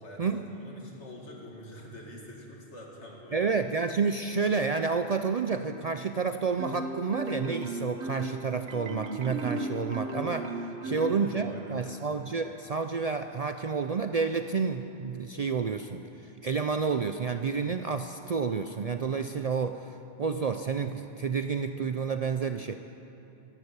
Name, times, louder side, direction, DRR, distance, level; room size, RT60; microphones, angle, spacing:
voice 1, 0.0-3.5 10.7-12.0, equal, 80° left, -1 dB, 2.6 m, -46 dB
voice 2, 3.3-22.8, right 5 dB, 50° right, 8 dB, 0.4 m, -30 dB
Marimba xylophone, 6.6-11.7, right 2 dB, 75° right, 1.2 m, -35 dB
13.5 x 12.0 x 8.2 m, 2.9 s
omnidirectional pair, 1.2 m